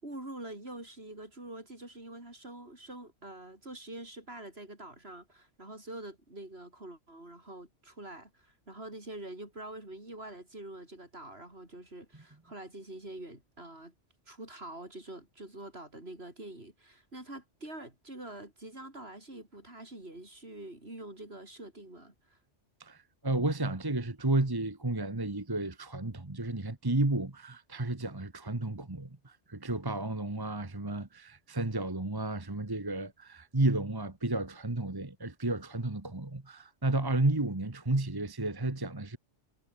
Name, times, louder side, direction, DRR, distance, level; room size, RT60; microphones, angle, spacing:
voice 1, 0.0-13.9 14.3-22.4, right 1 dB, 60° right, 6.3 m, -45 dB
voice 2, 22.8-39.2, right 2 dB, 20° right, 1.5 m, -32 dB
omnidirectional pair, 1.2 m